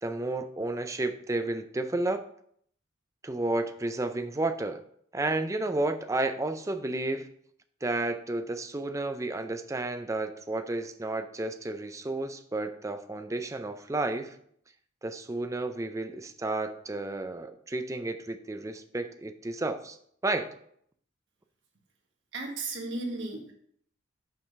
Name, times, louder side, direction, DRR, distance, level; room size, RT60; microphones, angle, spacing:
voice 1, 0.0-2.2 3.2-4.8 5.1-7.3 7.8-14.4 15.0-20.0 20.2-20.5, right 2 dB, 15° right, 8 dB, 0.4 m, -32 dB
voice 2, 22.3-23.5, right 2 dB, 65° right, 0 dB, 1.6 m, -35 dB
5.9 x 4.8 x 5.3 m, 0.66 s
head